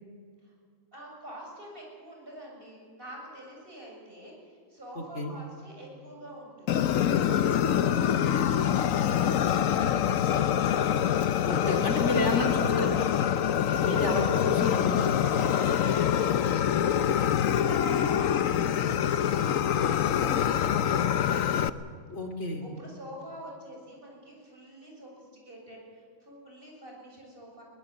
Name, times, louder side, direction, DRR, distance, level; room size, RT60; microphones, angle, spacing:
voice 1, 0.9-6.9 7.4-10.4 11.1-12.6 13.0-13.9 15.2-21.5 22.6-27.6, right 1 dB, 45° right, -1 dB, 7.5 m, -47 dB
voice 2, 4.9-5.3 11.4-13.0 13.8-15.1 22.1-22.6, left 2 dB, 60° left, 4 dB, 3.1 m, -30 dB
Fire, 6.7-21.7, left 9 dB, 90° left, 1.2 m, -25 dB
22.5 x 20.0 x 8.0 m, 2.1 s
omnidirectional pair, 1.4 m